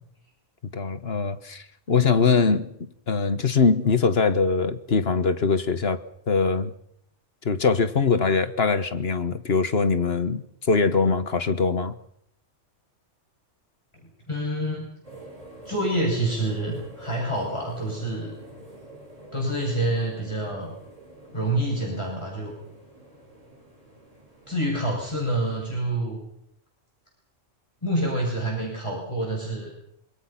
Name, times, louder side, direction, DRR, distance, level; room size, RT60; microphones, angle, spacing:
voice 1, 0.7-2.7 3.1-6.0 6.3-6.7 7.4-11.9, left 4 dB, 55° left, 11 dB, 1.4 m, -22 dB
voice 2, 14.3-14.9 15.6-18.4 19.3-20.7 21.3-22.5 24.5-26.2 27.8-29.7, right 1 dB, 25° left, -3 dB, 6.7 m, -27 dB
sound 1, 15.0-25.8, right 1 dB, 30° right, 5.3 m, -47 dB
26.5 x 24.0 x 5.8 m, 0.73 s
omnidirectional pair, 1.3 m